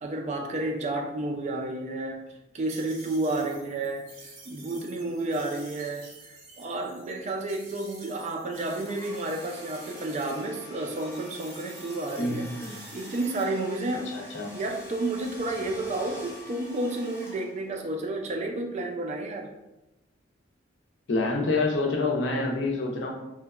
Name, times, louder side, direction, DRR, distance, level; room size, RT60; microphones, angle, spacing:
voice 1, 0.0-2.2 2.5-12.5 12.9-19.5, right 2 dB, 35° right, 2 dB, 0.3 m, -31 dB
sound 1, 2.7-10.5 10.8-13.4, right 3 dB, 75° right, 0.6 m, -49 dB
Domestic sounds home sounds, 8.7-17.9, left 1 dB, 10° left, 0.6 m, -47 dB
voice 2, 12.2-12.8 14.1-14.5 21.1-23.1, left 2 dB, 65° left, 0 dB, 0.5 m, -27 dB
2.8 x 2.1 x 2.3 m, 0.96 s
head